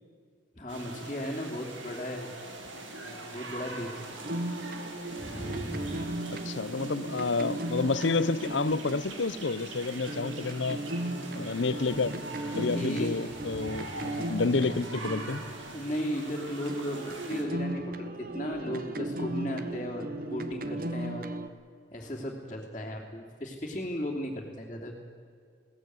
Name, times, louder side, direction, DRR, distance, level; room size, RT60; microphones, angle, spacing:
voice 1, 0.5-2.5 3.0-4.1 5.2-6.1 12.7-13.8 15.7-17.9 18.3-21.3 21.9-24.9, equal, 25° left, 3.0 m, -36 dB
sound 1, 0.7-17.4, right 2 dB, 90° right, 3.8 m, -43 dB
sound 2, 4.2-16.3 16.7-21.5, right 1 dB, 50° right, 1.3 m, -37 dB
voice 2, 6.3-10.8 11.3-12.1 12.6-15.4, left 3 dB, 75° left, 0.8 m, -29 dB
21.0 x 18.0 x 9.5 m
head